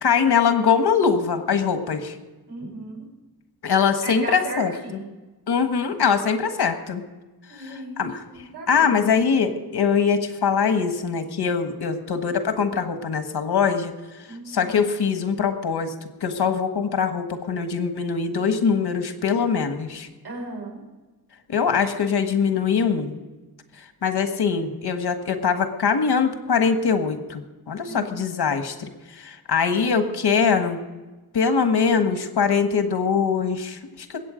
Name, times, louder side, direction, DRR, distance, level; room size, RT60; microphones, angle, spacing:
voice 1, 0.0-2.1 3.6-4.7 5.5-7.0 7.6-8.2 8.7-13.9 14.5-15.9 16.2-20.1 21.5-23.2 24.0-30.8 31.3-34.2, left 6 dB, 85° left, 7 dB, 1.5 m, -22 dB
voice 2, 2.5-3.0 4.0-5.1 7.5-9.2 9.5-9.6 14.3-14.8 20.2-20.8 27.8-28.2, right 2 dB, 85° right, -2 dB, 5.9 m, -36 dB
21.5 x 9.0 x 5.1 m, 1.2 s
wide cardioid pair, 120°, 38 cm